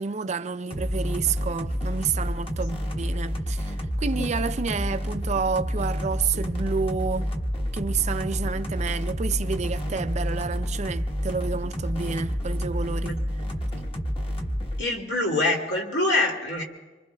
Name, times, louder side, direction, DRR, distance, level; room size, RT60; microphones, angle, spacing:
voice 1, 0.0-7.3 7.7-13.2, right 5 dB, 40° right, 0.4 m, -29 dB
sound 1, 0.7-14.8, equal, 35° left, 1.2 m, -29 dB
voice 2, 14.8-16.6, left 2 dB, 70° left, 2.5 m, -25 dB
26.5 x 24.5 x 2.3 m
head